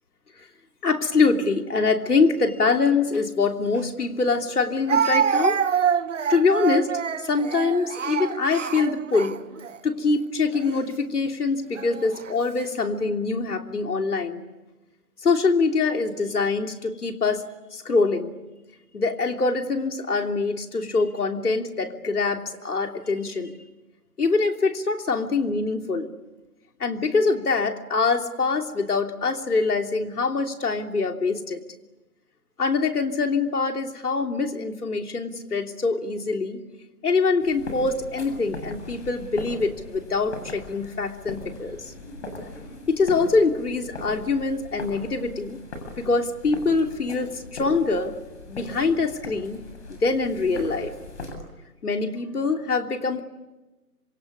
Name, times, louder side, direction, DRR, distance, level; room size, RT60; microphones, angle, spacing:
voice 1, 0.8-5.6 6.3-6.9 7.2-9.4 9.8-14.4 15.2-17.4 17.7-18.3 18.9-23.5 24.2-26.1 26.8-31.6 32.6-36.6 37.0-41.9 42.9-45.6 46.0-48.1 48.5-49.6 49.9-50.9 51.8-53.2, left 4 dB, 80° left, 5 dB, 3.2 m, -24 dB
Speech, 3.8-3.9 4.9-9.8 10.5-10.8 11.8-12.3, right 7 dB, 55° right, 1.1 m, -26 dB
sound 1, 37.4-51.3, left 2 dB, 45° left, 7.4 m, -39 dB
26.5 x 26.5 x 8.5 m, 1.1 s
hypercardioid pair, 160°, 45 cm